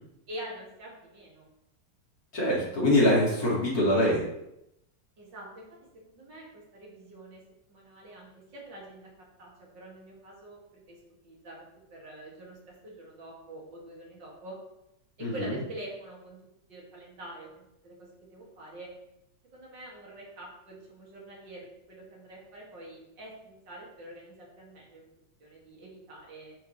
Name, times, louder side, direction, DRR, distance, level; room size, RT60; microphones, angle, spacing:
voice 1, 0.3-1.5 5.2-5.6 6.1-7.4 7.7-10.6 10.9-14.6 15.2-16.4 16.7-18.9 19.5-25.0 25.4-26.6, right 1 dB, 75° right, -3 dB, 3.0 m, -45 dB
voice 2, 2.3-4.3 15.2-15.6, left 1 dB, 50° left, -4 dB, 2.9 m, -24 dB
9.5 x 7.3 x 3.3 m, 0.84 s
omnidirectional pair, 2.0 m